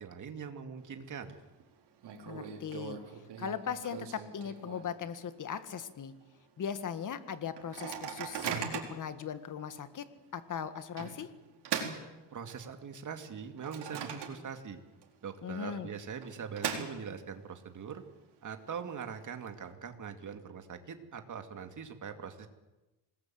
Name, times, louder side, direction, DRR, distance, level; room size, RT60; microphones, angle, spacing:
voice 1, 0.0-1.3 11.9-12.0 12.3-14.8 15.2-18.0 18.4-22.5, right 6 dB, 45° right, 6 dB, 2.6 m, -42 dB
Microwave oven, 0.8-1.3 1.6-1.7 2.0-5.1 5.5-5.6 5.9-6.2 6.7-6.8 7.6-9.1 9.7-9.8 11.0-12.8 13.2-14.7 15.0-15.1 16.0-17.4, right 7 dB, 70° right, 4.4 m, -40 dB
voice 2, 2.3-3.0 3.4-6.1 6.6-10.1 10.3-11.3 15.4-15.9, left 7 dB, 45° left, 10 dB, 1.8 m, -39 dB
26.5 x 20.0 x 7.9 m, 1.1 s
cardioid pair, 130°, 42 cm